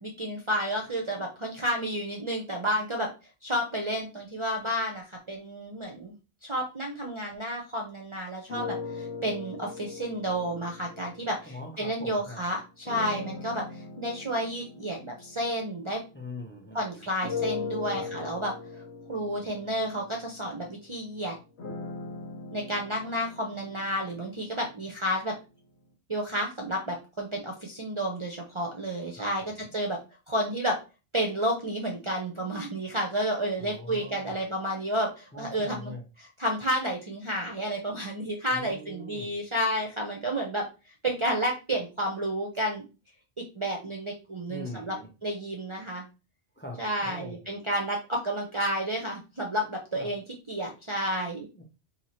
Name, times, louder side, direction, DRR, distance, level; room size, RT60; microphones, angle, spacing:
voice 1, 0.0-3.1 3.4-6.1 6.4-16.0 16.7-18.8 19.1-21.4 22.5-25.3 26.1-29.4 29.7-30.0 30.3-30.8 31.1-35.9 36.2-42.8 43.5-44.9 45.2-46.0 46.8-50.2 50.5-51.5, equal, 35° right, 0 dB, 0.6 m, -31 dB
sound 1, 8.5-12.0 12.8-16.6 17.2-25.2, left 4 dB, 85° left, 1.2 m, -40 dB
voice 2, 11.4-12.4 16.1-17.0 17.9-18.1 29.2-29.8 33.6-34.5 35.3-36.0 38.5-39.3 44.5-45.1 46.6-47.4 50.0-50.1 51.5-51.6, left 1 dB, 10° left, 2 dB, 0.7 m, -42 dB
2.8 x 2.7 x 4.3 m, 0.30 s
omnidirectional pair, 1.1 m